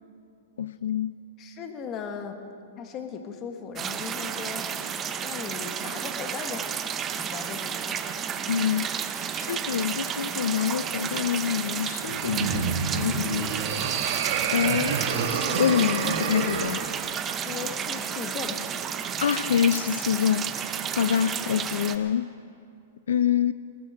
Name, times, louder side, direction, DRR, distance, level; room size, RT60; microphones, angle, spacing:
voice 1, 0.6-1.1 8.5-8.9 9.3-13.5 14.5-15.0 15.6-16.9 19.2-20.5 21.0-22.3 23.1-23.5, left 8 dB, 90° left, 0.4 m, -26 dB
voice 2, 1.4-2.4 2.8-4.7 5.2-6.8 7.2-7.9 17.4-18.9, left 6 dB, 25° left, 1.3 m, -37 dB
sound 1, 3.8-22.0, right 8 dB, 20° right, 0.7 m, -32 dB
sound 2, 12.0-16.8, right 6 dB, 50° right, 1.6 m, -28 dB
18.5 x 14.0 x 4.8 m
hypercardioid pair, 160°, 0 cm